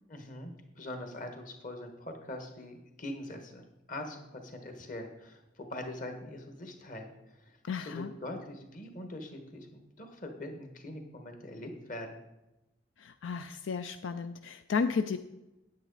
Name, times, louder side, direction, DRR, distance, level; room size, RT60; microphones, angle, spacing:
voice 1, 0.1-12.2, left 1 dB, 45° left, 5 dB, 1.4 m, -43 dB
voice 2, 7.7-8.1 13.0-15.2, left 5 dB, 80° left, 9 dB, 0.4 m, -33 dB
9.2 x 8.7 x 4.0 m, 0.98 s
head